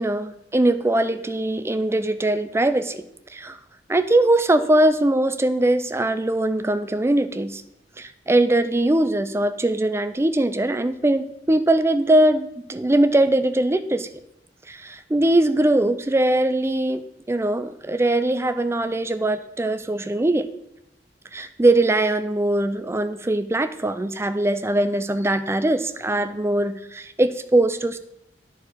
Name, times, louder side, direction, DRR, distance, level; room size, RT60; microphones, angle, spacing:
voice 1, 0.0-3.0 3.3-3.6 3.9-7.6 8.0-14.1 14.7-17.0 17.3-20.5 21.3-28.0, right 1 dB, 15° right, 11 dB, 0.4 m, -21 dB
9.5 x 4.7 x 6.2 m, 0.82 s
head